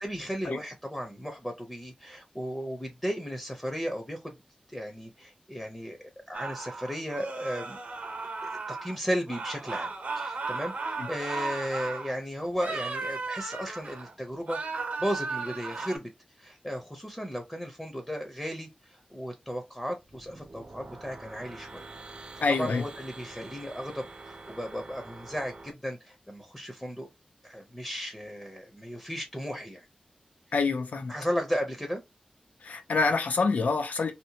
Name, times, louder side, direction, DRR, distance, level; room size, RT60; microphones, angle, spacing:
voice 1, 0.0-4.3 4.7-7.8 8.4-16.1 16.4-21.8 22.6-27.1 27.4-29.9 31.1-32.0, equal, 10° left, 0.6 m, -35 dB
sound 1, 6.3-9.0 9.3-12.1 12.5-14.1 14.4-16.0, right 3 dB, 85° right, 0.7 m, -35 dB
sound 2, 20.0-25.7, right 3 dB, 45° right, 0.5 m, -46 dB
voice 2, 22.4-22.8 30.5-31.1 32.6-34.1, left 4 dB, 85° left, 0.4 m, -26 dB
2.7 x 2.1 x 2.8 m
wide cardioid pair, 110°, 3 cm